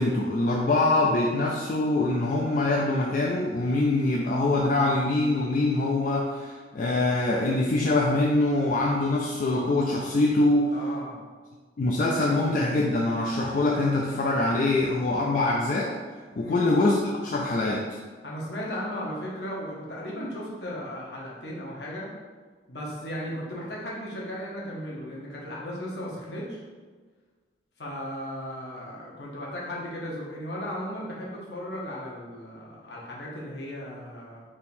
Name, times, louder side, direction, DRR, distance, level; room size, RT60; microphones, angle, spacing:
voice 1, 0.0-10.8 11.8-16.0 16.4-18.0, left 2 dB, 50° left, -2 dB, 0.4 m, -24 dB
voice 2, 10.7-11.2 14.8-14.9 16.4-16.7 18.2-22.1 22.7-26.6 27.8-34.4, equal, 70° left, -4 dB, 1.1 m, -36 dB
3.8 x 2.8 x 4.2 m, 1.4 s
head